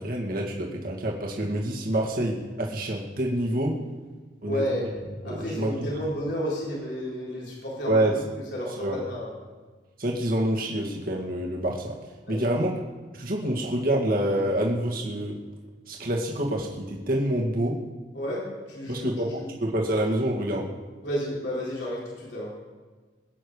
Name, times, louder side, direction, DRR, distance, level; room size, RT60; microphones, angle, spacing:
voice 1, 0.0-3.8 4.4-4.9 5.2-5.9 7.9-8.2 8.8-9.0 10.0-12.0 12.3-12.7 13.1-15.4 15.9-17.8 18.9-20.7, right 1 dB, 55° right, -2 dB, 2.1 m, -27 dB
voice 2, 4.4-4.8 5.2-8.1 8.5-9.3 12.3-12.6 18.1-19.1 21.0-22.5, equal, 70° left, -5 dB, 4.0 m, -31 dB
22.5 x 8.9 x 4.9 m, 1.4 s
head